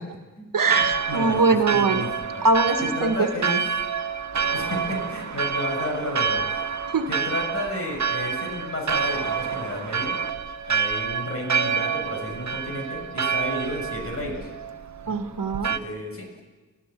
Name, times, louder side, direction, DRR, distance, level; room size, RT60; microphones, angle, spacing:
voice 1, 0.5-2.1 2.4-3.6 6.9-7.1 15.1-15.8, right 4 dB, 80° right, 6 dB, 1.7 m, -22 dB
Church bell, 0.7-15.8, right 6 dB, 60° right, 1.1 m, -28 dB
voice 2, 1.1-2.5 2.8-3.6 4.5-6.7 7.1-10.2 10.6-14.5 15.1-15.3 15.6-16.4, left 1 dB, 45° left, 1 dB, 7.0 m, -32 dB
29.5 x 15.0 x 8.4 m, 1.3 s
wide cardioid pair, 85°, 33 cm